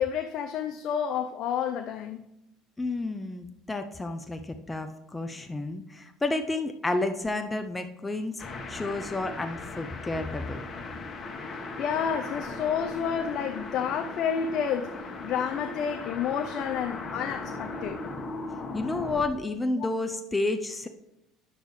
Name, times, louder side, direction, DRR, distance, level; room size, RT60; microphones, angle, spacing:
voice 1, 0.0-2.3 11.8-14.9 15.2-18.0 19.8-19.9, left 8 dB, 60° left, 0.5 m, -30 dB
voice 2, 2.8-10.6 18.7-20.9, left 2 dB, 15° left, 0.6 m, -31 dB
sound 1, 8.4-19.3, left 3 dB, 40° left, 1.3 m, -38 dB
9.9 x 6.6 x 3.2 m
hypercardioid pair, 75°, 0 cm